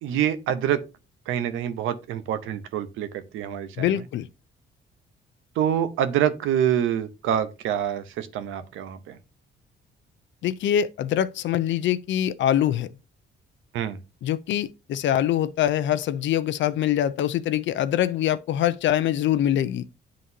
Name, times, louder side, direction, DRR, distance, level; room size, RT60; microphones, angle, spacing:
voice 1, 0.0-0.8 1.3-3.9 5.6-9.2 13.7-14.0, right 10 dB, 90° right, 0.7 m, -26 dB
voice 2, 3.8-4.3 10.4-12.9 14.2-19.8, left 11 dB, 70° left, 0.5 m, -24 dB
9.6 x 3.8 x 2.7 m
cardioid pair, 90°, 20 cm